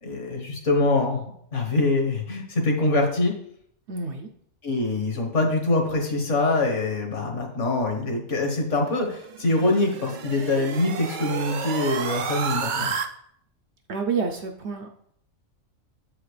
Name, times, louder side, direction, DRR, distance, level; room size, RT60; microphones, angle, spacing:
voice 1, 0.0-3.3 4.6-12.9, left 2 dB, 60° left, 1 dB, 1.6 m, -24 dB
voice 2, 3.9-4.3 13.9-14.9, right 5 dB, 60° right, 3 dB, 0.8 m, -28 dB
sound 1, 9.1-13.1, right 6 dB, 80° right, 0.4 m, -31 dB
7.4 x 5.0 x 3.2 m, 0.69 s
omnidirectional pair, 1.5 m